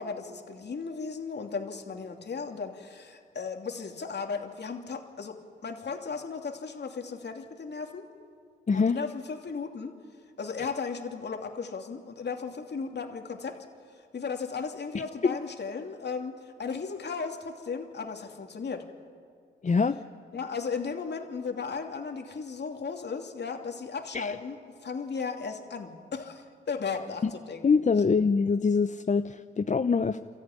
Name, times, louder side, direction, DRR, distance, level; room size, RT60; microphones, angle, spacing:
voice 1, 0.0-8.1 8.7-9.9 10.4-13.6 13.9-18.8 20.3-27.6, left 5 dB, 55° left, 4 dB, 2.8 m, -36 dB
voice 2, 8.7-9.0 15.2-15.4 19.6-20.0 24.1-24.4 27.2-27.3 27.6-30.2, left 5 dB, 35° left, 10 dB, 0.8 m, -24 dB
30.0 x 13.5 x 10.0 m, 2.2 s
cardioid pair, 60°, 21 cm